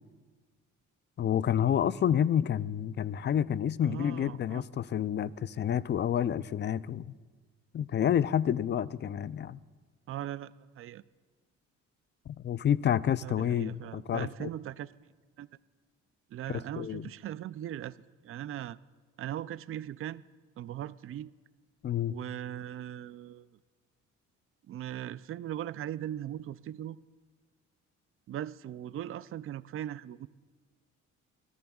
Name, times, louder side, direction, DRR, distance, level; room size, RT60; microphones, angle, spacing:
voice 1, 1.2-7.1 7.7-9.6 12.3-14.5 16.5-17.1 21.8-22.2, left 9 dB, 40° left, 0.4 m, -29 dB
voice 2, 3.8-4.6 10.1-11.0 13.2-15.1 15.4-15.5 16.3-18.0 18.2-18.8 19.2-20.2 20.6-21.3 22.1-23.5 24.7-27.0 28.3-30.3, right 11 dB, 45° right, 0.4 m, -39 dB
25.5 x 14.0 x 2.4 m
cardioid pair, 90°, 30 cm